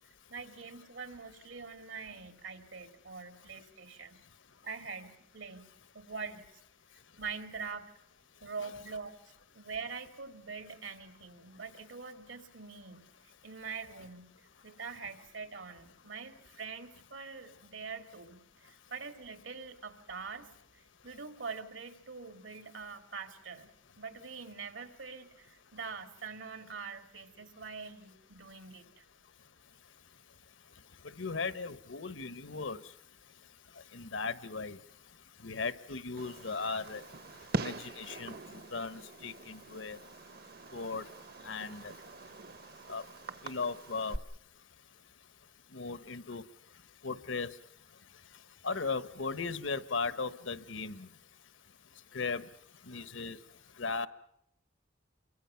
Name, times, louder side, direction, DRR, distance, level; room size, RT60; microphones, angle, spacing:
voice 1, 0.3-4.2 4.6-5.7 5.9-6.4 7.2-7.9 8.4-9.2 9.5-13.1 13.4-14.3 14.6-23.7 24.0-29.0, right 5 dB, 80° right, 7 dB, 2.6 m, -44 dB
voice 2, 31.2-32.8 33.9-34.8 35.4-37.0 37.6-38.3 38.7-40.0 40.7-41.0 41.4-41.9 42.9-43.0 43.4-44.2 45.7-46.4 47.0-47.5 48.6-51.1 52.1-52.4 52.9-53.4 53.8-54.1, left 4 dB, 80° left, 13 dB, 1.2 m, -37 dB
Fireworks, 36.2-44.2, right 2 dB, 55° right, 1.0 m, -43 dB
28.0 x 23.5 x 5.8 m, 0.73 s
head